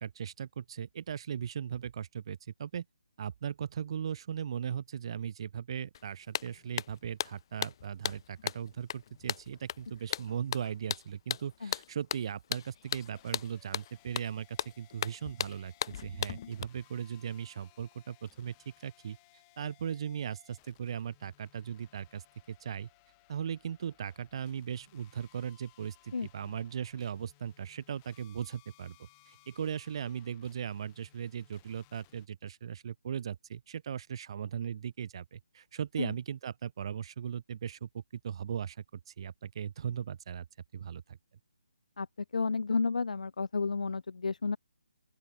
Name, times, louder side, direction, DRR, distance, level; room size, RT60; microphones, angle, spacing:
voice 1, 0.0-2.8 3.2-18.5 18.8-19.2 19.6-22.2 22.5-22.9 23.3-38.8 39.2-40.4 40.7-41.2, right 8 dB, 45° right, 0.8 m, -38 dB
sound 1, 5.9-6.0 6.3-16.6, left 10 dB, 35° left, 1.0 m, -37 dB
sound 2, 12.8-32.3, left 32 dB, 20° left, 3.5 m, -64 dB
voice 2, 42.3-44.6, left 4 dB, 75° left, 0.5 m, -31 dB
open air
figure-of-eight pair, 155°, 4 cm